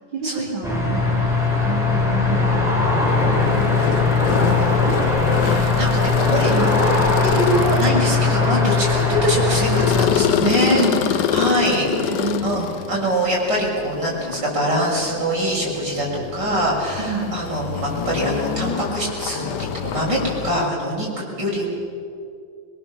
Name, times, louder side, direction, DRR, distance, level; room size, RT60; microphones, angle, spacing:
voice 1, 0.1-1.3 1.6-2.7 3.3-5.0 6.5-6.8 10.4-11.1 11.9-12.6 16.9-17.3, right 4 dB, 80° right, -6 dB, 4.2 m, -29 dB
sound 1, 0.6-10.1, left 3 dB, ahead, 5.9 m, -19 dB
sound 2, 3.0-20.7, left 9 dB, 65° left, 1.3 m, -26 dB
voice 2, 5.4-6.5 7.2-10.9 11.1-12.2 12.4-21.7, equal, 65° right, -4 dB, 7.2 m, -23 dB
22.5 x 22.0 x 7.1 m, 2.4 s
omnidirectional pair, 2.1 m